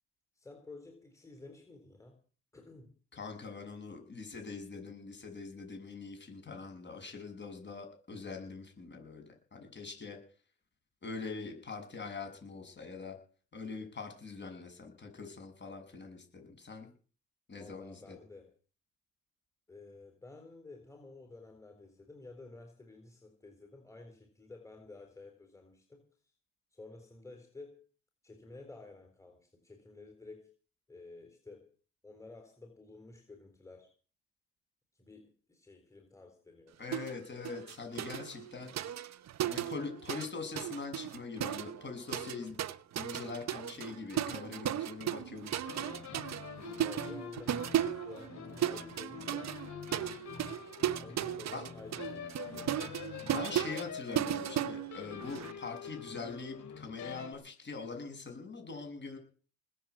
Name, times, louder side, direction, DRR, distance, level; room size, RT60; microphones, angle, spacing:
voice 1, 0.4-2.2 2.5-2.9 17.6-18.5 19.7-26.1 26.7-27.8 28.2-30.5 30.9-31.7 32.0-33.9 35.0-36.7 46.8-49.6 51.0-53.2, left 3 dB, 10° left, 4 dB, 3.9 m, -52 dB
voice 2, 3.1-10.2 11.0-13.2 13.5-16.9 17.5-18.2 36.8-38.7 39.5-42.6 43.0-45.9 51.5-51.6 53.2-59.2, left 4 dB, 35° left, 4 dB, 7.2 m, -43 dB
sound 1, 36.9-37.2 37.4-40.3 40.6-55.5, right 11 dB, 65° right, 1.0 m, -36 dB
sound 2, 45.6-57.3, left 7 dB, 70° left, 4.2 m, -45 dB
20.0 x 7.4 x 8.2 m, 0.41 s
cardioid pair, 90°, 30 cm